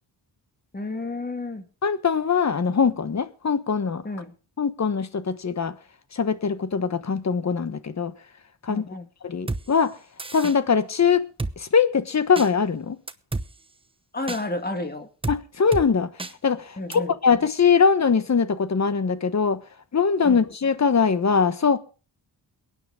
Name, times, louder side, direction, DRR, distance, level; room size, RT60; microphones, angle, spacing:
voice 1, 0.7-1.6 4.0-4.3 8.7-9.1 14.1-15.1 16.8-17.1 20.2-20.4, left 2 dB, 20° left, 2.2 m, -31 dB
voice 2, 1.8-4.0 4.6-5.7 6.1-8.1 8.6-8.8 9.2-10.0 10.3-11.3 11.6-13.0 15.3-16.1 16.4-19.6 19.9-21.8, left 6 dB, 40° left, 1.2 m, -22 dB
Drum kit, 9.5-9.6 10.2-10.6 11.4-11.5 12.4-12.5 13.1-13.5 14.3-14.4 15.2-15.4 15.7-15.9 16.2-16.3 16.9-17.0, right 2 dB, 15° right, 0.9 m, -29 dB
22.5 x 9.6 x 3.6 m
cardioid pair, 85°, 42 cm